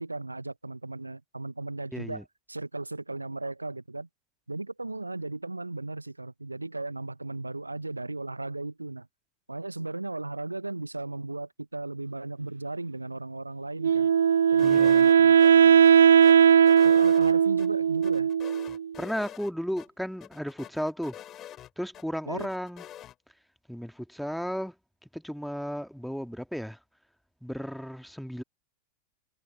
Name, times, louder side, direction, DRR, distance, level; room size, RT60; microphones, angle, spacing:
voice 1, 0.0-4.1 4.5-9.1 9.5-14.1 14.5-15.9 16.8-18.3 22.3-22.5, right 2 dB, 85° right, 1.0 m, -36 dB
voice 2, 1.9-2.2 14.6-15.1 19.0-21.2 21.8-22.9 23.7-24.7 25.1-26.8 27.4-28.4, equal, ahead, 2.0 m, -34 dB
Wind instrument woodwind instrument, 13.8-18.9, right 8 dB, 65° right, 0.5 m, -19 dB
sound 1, 14.6-15.5 15.8-17.7 18.0-19.5 19.8-19.9 20.2-22.0 22.4-23.2, left 12 dB, 30° left, 7.8 m, -46 dB
figure-of-eight pair, 90°, 0 cm